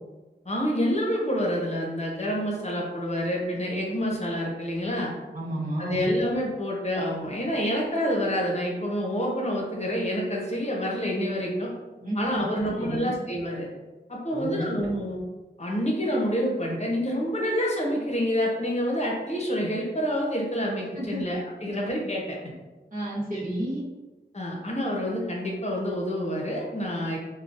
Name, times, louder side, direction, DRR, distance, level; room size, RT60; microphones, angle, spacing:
voice 1, 0.4-5.1 5.8-11.7 12.1-13.7 14.1-15.2 15.6-22.4 24.3-27.2, equal, 35° left, -2 dB, 0.8 m, -28 dB
voice 2, 5.3-6.1 12.0-13.1 14.3-14.6 20.9-21.2 22.9-23.9, right 1 dB, 50° right, -9 dB, 1.0 m, -31 dB
3.6 x 2.2 x 2.5 m, 1.2 s
wide cardioid pair, 70°, 18 cm